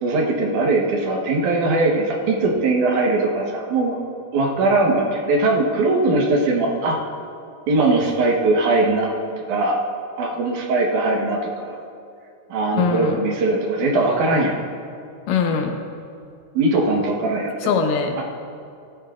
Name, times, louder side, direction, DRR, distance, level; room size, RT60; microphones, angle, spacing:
voice 1, 0.0-4.0 4.3-7.1 7.7-9.1 9.5-9.8 10.2-11.8 12.5-14.6 16.5-17.5 18.2-18.3, right 2 dB, 70° right, 0 dB, 2.6 m, -20 dB
voice 2, 12.8-13.2 14.3-14.4 15.3-15.7 17.6-18.2, left 5 dB, 85° left, 4 dB, 2.6 m, -22 dB
18.5 x 13.5 x 2.5 m, 2.5 s
omnidirectional pair, 3.7 m